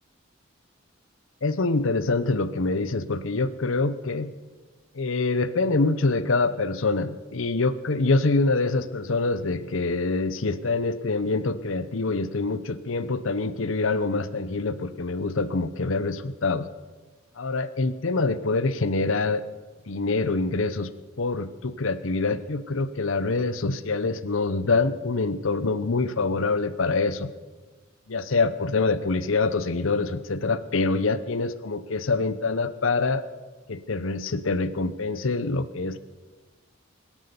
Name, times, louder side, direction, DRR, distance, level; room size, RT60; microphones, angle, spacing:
voice 1, 1.4-4.3 4.9-16.7 17.4-19.4 19.9-20.9 21.2-27.3 28.1-33.2 33.7-36.0, left 3 dB, 70° left, 14 dB, 0.8 m, -25 dB
18.5 x 11.0 x 6.9 m, 1.3 s
head